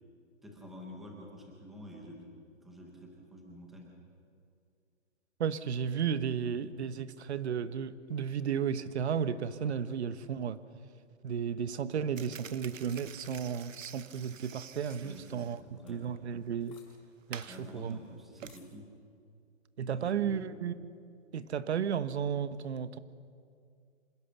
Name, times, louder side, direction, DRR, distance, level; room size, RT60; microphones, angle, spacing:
voice 1, 0.4-2.3 2.6-3.9 15.0-16.1 17.5-18.9 19.9-20.4, equal, ahead, -1 dB, 0.5 m, -49 dB
voice 2, 5.4-10.6 11.2-15.6 15.9-16.8 17.3-18.0 19.8-20.7 21.3-23.0, right 7 dB, 60° right, 14 dB, 1.2 m, -33 dB
sound 1, 12.2-18.6, right 8 dB, 85° right, 1.0 m, -50 dB
sound 2, 13.0-16.9 17.1-17.2 17.4-17.6 18.5-18.7, left 8 dB, 30° left, 5.8 m, -65 dB
26.5 x 16.5 x 6.9 m, 2.3 s
hypercardioid pair, 160°, 38 cm